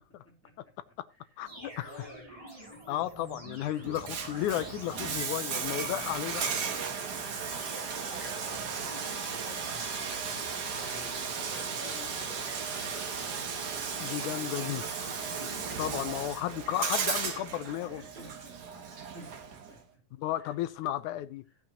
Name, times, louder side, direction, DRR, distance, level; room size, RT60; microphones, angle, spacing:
voice 1, 0.1-3.1 3.8-3.9 5.8-6.2 7.1-9.8 10.5-13.5 14.8-15.4 16.3-16.4 16.8-16.9 17.2-17.4 17.8-20.0 20.4-20.5 20.8-20.9, left 1 dB, 5° left, 3.2 m, -53 dB
voice 2, 1.4-1.9 2.9-6.5 14.0-14.8 15.8-18.0 20.1-21.4, left 13 dB, 80° left, 2.2 m, -33 dB
sound 1, 1.4-16.0, right 1 dB, 10° right, 2.8 m, -48 dB
Bathtub (filling or washing), 3.8-19.8, right 6 dB, 60° right, 1.1 m, -35 dB
16.0 x 7.3 x 3.0 m
omnidirectional pair, 3.5 m